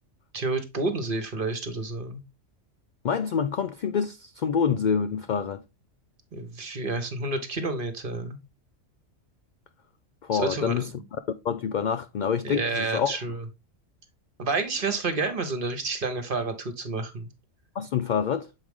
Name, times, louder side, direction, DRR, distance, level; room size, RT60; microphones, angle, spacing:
voice 1, 0.3-2.2 6.3-8.4 10.3-10.8 12.4-13.4 14.4-17.3, right 3 dB, 45° right, 1.3 m, -29 dB
voice 2, 3.0-5.6 10.2-10.9 11.4-13.2 17.8-18.5, left 7 dB, 80° left, 0.4 m, -26 dB
7.4 x 4.8 x 3.5 m
omnidirectional pair, 1.3 m